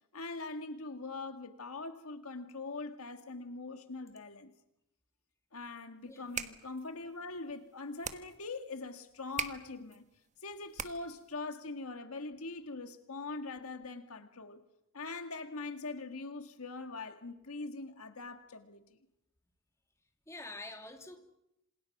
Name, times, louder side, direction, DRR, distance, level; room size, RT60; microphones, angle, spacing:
voice 1, 0.1-4.5 5.5-10.0 10.4-14.6 14.9-19.0, left 3 dB, 75° left, 1.8 m, -42 dB
sound 1, 6.1-11.3, right 6 dB, 35° right, 1.4 m, -43 dB
voice 2, 20.3-21.2, left 2 dB, 15° left, 2.8 m, -46 dB
27.5 x 27.0 x 6.1 m
head